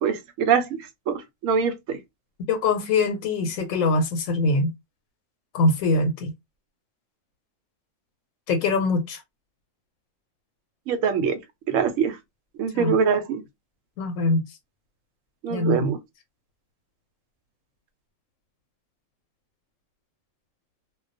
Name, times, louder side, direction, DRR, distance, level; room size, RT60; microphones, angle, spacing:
voice 1, 0.0-2.0 10.9-11.4 11.7-12.2 12.6-13.4 15.4-16.0, right 6 dB, 80° right, 0.9 m, -24 dB
voice 2, 2.5-4.7 5.5-6.3 8.5-9.2 12.7-12.9 14.0-14.4 15.5-15.9, left 3 dB, 85° left, 1.0 m, -23 dB
2.3 x 2.2 x 2.5 m
omnidirectional pair, 1.3 m